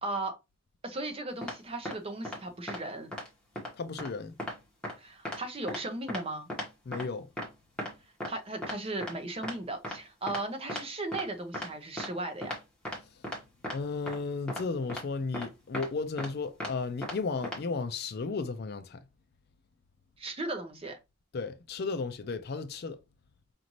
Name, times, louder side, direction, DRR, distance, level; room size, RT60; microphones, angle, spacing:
voice 1, 0.0-0.4 0.8-3.1 5.0-6.5 8.3-12.6 20.2-21.0, right 2 dB, 30° right, 0.7 m, -36 dB
sound 1, 1.4-1.5 1.8-1.9 2.2-2.4 2.7-2.8 3.1-3.3 3.6-3.7 4.0-4.1 4.4-4.5 4.8-4.9 5.2-5.4 5.7-5.8 6.1-6.2 6.5-6.7 6.9-7.0 7.4-7.5 7.8-7.9 8.2-8.3 8.6-8.7 9.0-9.1 9.4-9.5 9.8-9.9 10.3-10.4 10.7-10.8 11.1-11.2 11.5-11.7 12.0-12.1 12.4-12.6 12.8-13.0 13.2-13.4 13.6-13.7 14.1-14.2 14.5-14.6 14.9-15.0 15.3-15.5 15.7-15.9 16.2-16.3 16.6-16.7 17.0-17.1 17.4-17.6, left 1 dB, 5° left, 1.2 m, -36 dB
voice 2, 3.7-4.4 6.9-7.3 13.1-13.2 13.7-19.1 21.3-23.0, left 4 dB, 50° left, 0.4 m, -34 dB
5.1 x 2.6 x 3.0 m
head